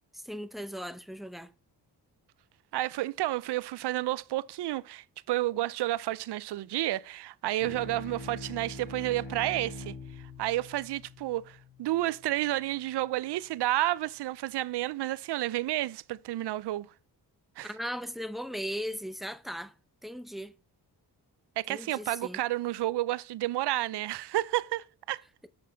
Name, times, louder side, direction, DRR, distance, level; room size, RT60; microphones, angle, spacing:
voice 1, 0.1-1.5 17.6-19.7 20.0-20.5 21.7-22.4, equal, ahead, 0.6 m, -37 dB
voice 2, 2.7-16.9 17.6-17.7 21.6-25.2, right 16 dB, 80° right, 0.5 m, -31 dB
sound 1, 7.6-12.5, left 2 dB, 70° left, 3.4 m, -44 dB
6.6 x 5.8 x 5.4 m
cardioid pair, 75°, 40 cm